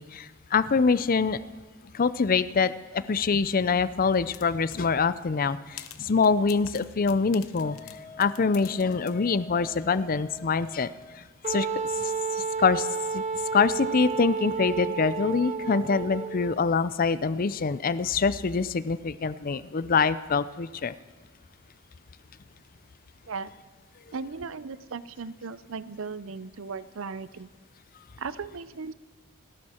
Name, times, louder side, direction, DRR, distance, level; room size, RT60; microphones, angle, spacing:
voice 1, 0.0-1.4 1.9-7.8 8.2-10.9 11.2-11.7 12.0-12.9 13.1-13.2 13.5-20.9, left 5 dB, 45° left, 16 dB, 0.5 m, -25 dB
sound 1, 4.3-4.8 5.2-5.3 5.8-9.2, left 11 dB, 80° left, 0.9 m, -45 dB
Wind instrument woodwind instrument, 7.6-11.3, left 2 dB, 20° left, 1.1 m, -47 dB
Wind instrument woodwind instrument 2, 11.4-16.6, right 5 dB, 35° right, 0.8 m, -31 dB
voice 2, 24.1-27.5 28.2-28.9, right 4 dB, 70° right, 16 dB, 0.6 m, -37 dB
29.5 x 11.0 x 4.4 m, 1.3 s
head